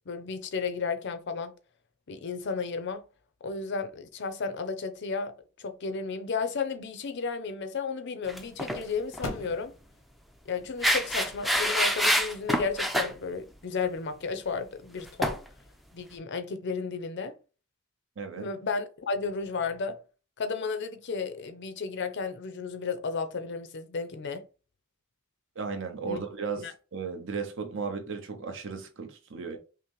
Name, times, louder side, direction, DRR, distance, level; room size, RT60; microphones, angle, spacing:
voice 1, 0.1-1.5 2.1-3.0 3.4-9.7 10.5-15.4 15.9-17.3 18.4-20.0 20.4-24.4 26.0-26.2 26.6-26.7, left 5 dB, 55° left, 0.6 m, -33 dB
sound 1, 6.9-13.9, left 2 dB, 85° left, 0.8 m, -47 dB
sound 2, 8.3-8.8 9.1-9.3 10.8-13.1 15.2-15.4, equal, ahead, 0.4 m, -26 dB
voice 2, 18.2-18.5 25.6-29.6, right 5 dB, 60° right, 0.9 m, -35 dB
5.7 x 2.1 x 3.0 m
head